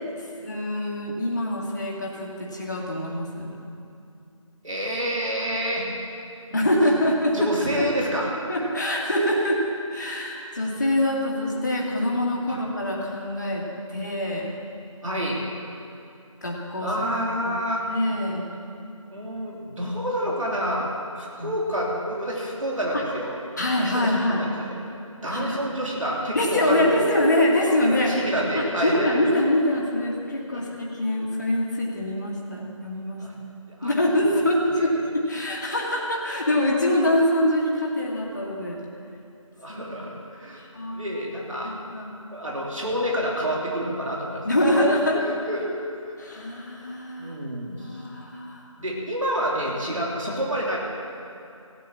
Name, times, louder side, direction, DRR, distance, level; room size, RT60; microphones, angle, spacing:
voice 1, 0.1-3.5 6.5-7.9 8.5-13.6 13.9-14.5 16.4-16.9 17.4-17.6 17.9-18.5 21.4-21.5 22.9-23.0 23.6-24.4 25.3-25.6 26.3-28.1 28.5-33.5 33.8-38.8 39.7-39.8 40.6-41.1 41.6-42.1 44.4-45.2 46.2-47.4 47.8-48.7, left 1 dB, 35° left, -3 dB, 2.2 m, -24 dB
voice 2, 4.6-5.9 7.3-8.7 12.5-12.6 15.0-15.4 16.8-17.8 19.1-20.9 21.2-23.4 23.9-24.7 25.2-27.0 27.8-29.2 30.5-30.6 33.2-33.3 33.7-33.9 34.7-34.9 39.6-40.6 40.9-41.7 42.3-44.4 45.1-45.8 47.2-48.0 48.8-50.8, equal, 70° right, -3 dB, 3.1 m, -28 dB
17.0 x 9.3 x 7.4 m, 2.6 s
figure-of-eight pair, 175°, 17 cm